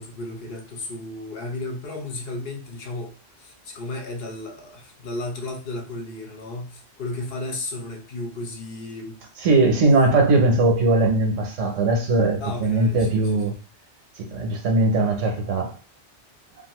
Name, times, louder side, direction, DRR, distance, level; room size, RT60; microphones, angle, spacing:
voice 1, 0.0-9.2 12.4-13.6, left 2 dB, 60° left, 0.9 m, -34 dB
voice 2, 9.4-13.5 14.2-15.7, right 2 dB, 90° right, 1.2 m, -20 dB
2.6 x 2.5 x 2.9 m
omnidirectional pair, 1.2 m